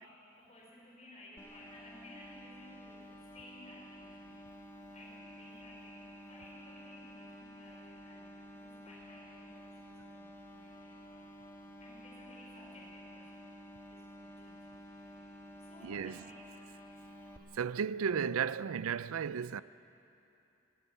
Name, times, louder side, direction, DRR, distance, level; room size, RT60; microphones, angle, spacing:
voice 1, 0.0-4.4 4.9-11.2 11.8-13.6 13.9-16.7, left 1 dB, 30° left, 4.8 m, -57 dB
sound 1, 1.4-17.4, equal, 10° left, 1.3 m, -52 dB
voice 2, 15.8-16.2 17.5-19.6, right 7 dB, 85° right, 0.4 m, -34 dB
18.0 x 16.5 x 9.7 m
head